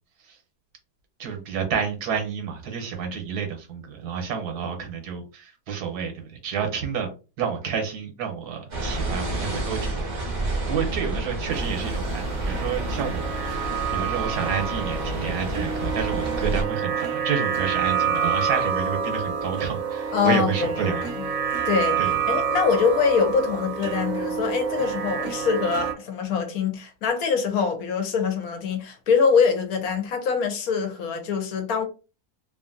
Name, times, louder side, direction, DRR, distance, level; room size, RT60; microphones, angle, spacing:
voice 1, 1.2-7.1 7.4-10.3 10.7-21.4 22.0-22.1, right 7 dB, 85° right, 1.4 m, -30 dB
sound 1, 8.7-16.6, right 2 dB, 40° right, 0.7 m, -29 dB
sound 2, 11.5-25.9, right 7 dB, 65° right, 1.0 m, -28 dB
voice 2, 20.1-20.9 21.2-21.3 21.6-22.0 22.3-31.8, left 6 dB, 70° left, 1.1 m, -24 dB
2.9 x 2.5 x 2.5 m
omnidirectional pair, 1.7 m